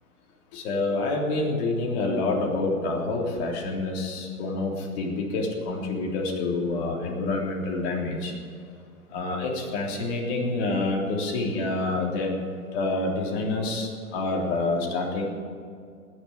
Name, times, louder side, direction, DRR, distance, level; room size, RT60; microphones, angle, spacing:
voice 1, 0.5-8.3 9.1-12.3 12.7-15.2, left 2 dB, 40° left, -1 dB, 3.4 m, -27 dB
19.0 x 7.0 x 9.6 m, 2.3 s
hypercardioid pair, 145°, 46 cm